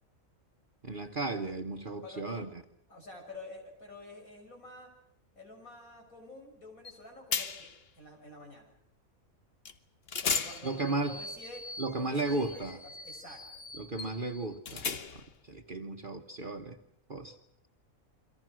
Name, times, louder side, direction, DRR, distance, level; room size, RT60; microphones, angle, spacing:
voice 1, 0.8-2.5 10.6-11.2 11.8-12.8 13.8-14.9 15.4-16.8 17.1-17.4, right 2 dB, 40° right, 4 dB, 1.3 m, -34 dB
voice 2, 2.0-2.5 2.9-4.9 5.4-8.7 10.2-11.6 11.9-13.4, left 2 dB, 80° left, 2 dB, 7.1 m, -49 dB
sound 1, 6.8-7.0 7.3-7.8 9.6-9.8 10.1-15.4, left 5 dB, 45° left, 1.3 m, -37 dB
29.5 x 24.0 x 6.3 m, 0.75 s
omnidirectional pair, 1.5 m